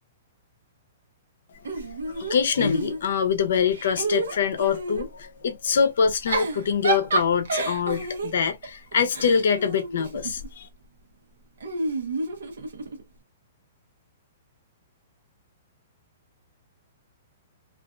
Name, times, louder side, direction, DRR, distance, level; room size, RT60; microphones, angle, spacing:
Giggle / Chuckle chortle, 1.6-3.3 3.7-5.1 6.0-10.5 11.6-13.0, right 3 dB, 85° right, 0.7 m, -30 dB
voice 1, 1.8-10.7, left 6 dB, 75° left, 0.6 m, -24 dB
2.5 x 2.4 x 2.2 m
hypercardioid pair, 150°, 0 cm